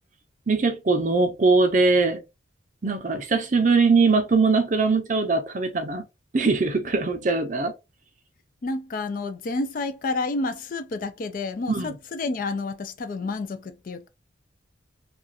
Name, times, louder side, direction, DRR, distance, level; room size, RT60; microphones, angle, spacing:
voice 1, 0.5-2.2 2.8-6.0 6.3-7.7 11.7-11.9, right 4 dB, 40° right, 0.5 m, -21 dB
voice 2, 8.6-14.1, left 3 dB, 45° left, 0.3 m, -30 dB
2.4 x 2.3 x 2.6 m
head